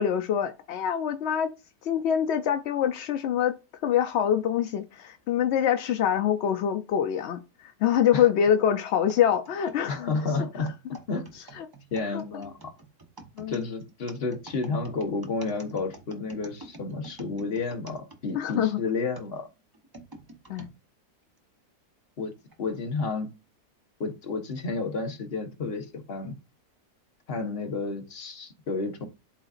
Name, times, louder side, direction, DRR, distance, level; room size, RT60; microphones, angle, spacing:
voice 1, 0.0-1.5 1.8-3.5 3.8-10.1 11.6-11.7 12.1-12.2 13.4-13.6 18.3-18.8 20.5-20.7, left 9 dB, 65° left, 0.7 m, -25 dB
sound 1, 9.1-18.6 19.1-20.7 21.4-21.5 22.3-22.6, right 2 dB, 20° right, 0.7 m, -48 dB
voice 2, 9.9-10.7 11.1-11.3 11.9-12.5 13.5-19.5 22.2-22.3 22.6-23.3 24.0-26.3 27.3-29.1, left 3 dB, 45° left, 1.2 m, -31 dB
11.5 x 3.9 x 2.4 m
omnidirectional pair, 1.6 m